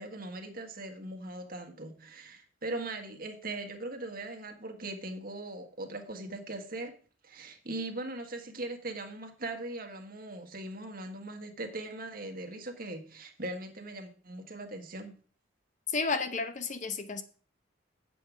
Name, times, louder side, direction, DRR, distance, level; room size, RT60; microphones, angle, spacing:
voice 1, 0.0-6.9 7.2-15.1, right 2 dB, 45° right, 1.7 m, -40 dB
voice 2, 15.9-17.2, left 4 dB, 40° left, 0.8 m, -32 dB
8.9 x 7.7 x 5.0 m
head